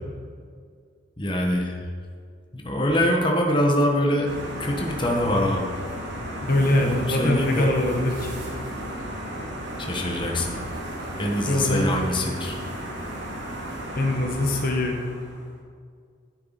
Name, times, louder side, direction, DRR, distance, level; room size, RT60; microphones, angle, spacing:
voice 1, 1.2-1.8 2.5-5.7 6.4-7.7 9.8-10.6 11.2-12.6, left 1 dB, 25° left, 0 dB, 1.1 m, -24 dB
sound 1, 4.2-15.5, equal, 60° right, 2.1 m, -34 dB
voice 2, 6.5-8.3 11.4-11.9 14.0-15.0, left 1 dB, 50° left, 1 dB, 1.0 m, -23 dB
10.5 x 9.1 x 4.1 m, 2.1 s
head